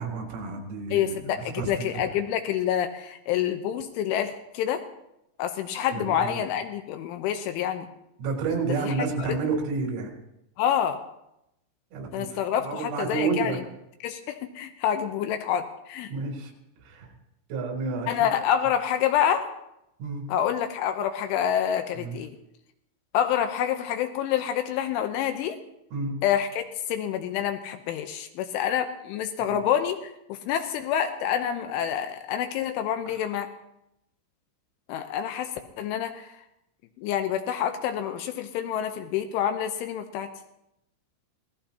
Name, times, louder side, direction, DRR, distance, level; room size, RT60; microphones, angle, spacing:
voice 1, 0.0-1.2 1.5-1.9 5.9-6.3 8.2-10.1 11.9-13.6 16.1-16.5 16.8-17.1 17.5-18.3 20.0-20.2 22.0-22.2 25.9-26.2 29.4-29.6 33.1-33.2, right 4 dB, 90° right, 1 dB, 6.1 m, -30 dB
voice 2, 0.9-4.8 5.4-7.9 8.8-9.3 10.6-11.0 12.1-13.6 14.0-16.1 18.1-19.5 20.3-22.3 23.1-25.6 26.2-30.0 30.3-33.5 34.9-35.5 35.8-36.3 37.0-40.3, left 9 dB, 80° left, 7 dB, 3.1 m, -27 dB
24.5 x 18.0 x 2.9 m, 0.84 s
omnidirectional pair, 6.0 m